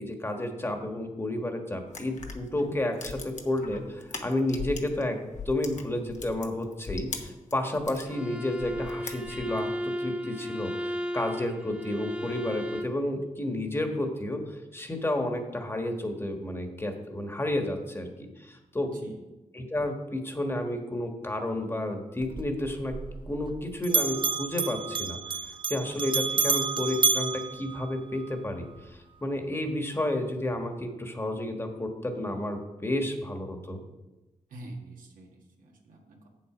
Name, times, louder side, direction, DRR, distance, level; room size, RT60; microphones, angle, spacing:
voice 1, 0.0-18.9 19.5-22.9 23.3-25.2 25.7-33.8, left 1 dB, 20° left, 4 dB, 1.4 m, -31 dB
sound 1, 1.9-5.0 5.3-8.1 8.6-9.7, left 4 dB, 65° left, 1.1 m, -40 dB
Bowed string instrument, 8.1-13.0, equal, 10° right, 1.2 m, -34 dB
Bell, 22.2-23.6 23.8-28.3, right 5 dB, 40° right, 0.5 m, -29 dB
voice 2, 34.5-36.3, right 2 dB, 85° right, 0 dB, 1.7 m, -45 dB
7.9 x 7.5 x 4.9 m, 1.0 s
cardioid pair, 90°, 13 cm